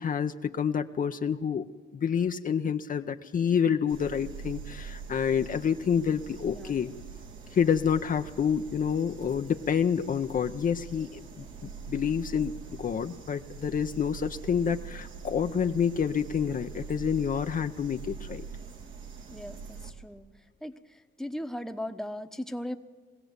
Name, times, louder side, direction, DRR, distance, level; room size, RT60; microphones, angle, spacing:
voice 1, 0.0-1.7 1.9-6.9 7.5-11.5 11.9-12.5 12.8-18.4, left 7 dB, 45° left, 7 dB, 0.7 m, -28 dB
sound 1, 3.9-19.9, right 6 dB, 75° right, 2.5 m, -43 dB
voice 2, 6.5-7.0 19.3-20.3 20.6-22.8, left 1 dB, ahead, 7 dB, 1.1 m, -38 dB
21.5 x 16.0 x 8.0 m, 1.5 s
cardioid pair, 90°, 20 cm